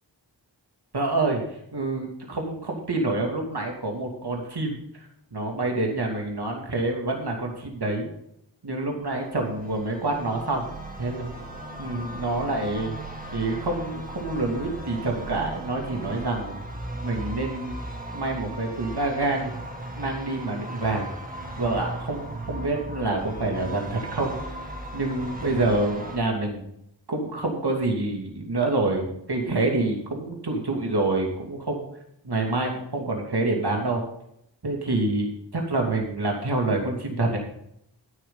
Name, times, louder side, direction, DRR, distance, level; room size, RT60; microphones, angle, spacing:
voice 1, 0.9-1.4 1.7-4.8 5.3-8.1 8.6-10.6 11.0-11.3 11.8-13.0 13.3-16.6 17.0-17.8 18.1-19.6 20.0-21.1 21.6-24.4 24.9-26.6 27.1-31.8 32.2-34.0 34.6-37.4, right 2 dB, 60° right, 1 dB, 2.8 m, -27 dB
sound 1, 9.0-26.2, right 1 dB, 20° right, 2.2 m, -37 dB
12.5 x 9.8 x 4.0 m, 0.75 s
wide cardioid pair, 40°, 44 cm